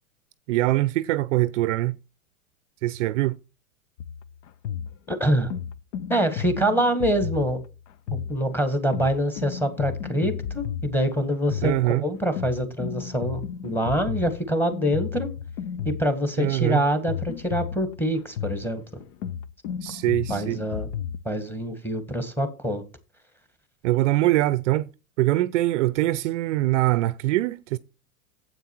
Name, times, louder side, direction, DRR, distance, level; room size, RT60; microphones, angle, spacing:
voice 1, 0.5-2.0 2.8-3.4 11.6-12.0 16.4-16.8 19.8-20.6 23.8-24.9 25.2-27.8, right 17 dB, 60° right, 0.6 m, -23 dB
sound 1, 4.0-21.2, left 8 dB, 60° left, 0.8 m, -34 dB
voice 2, 5.1-5.5 6.1-7.6 8.1-15.3 15.9-18.8 20.3-20.9 21.3-22.8, equal, 5° left, 1.6 m, -25 dB
9.1 x 8.0 x 4.5 m
hypercardioid pair, 115°, 42 cm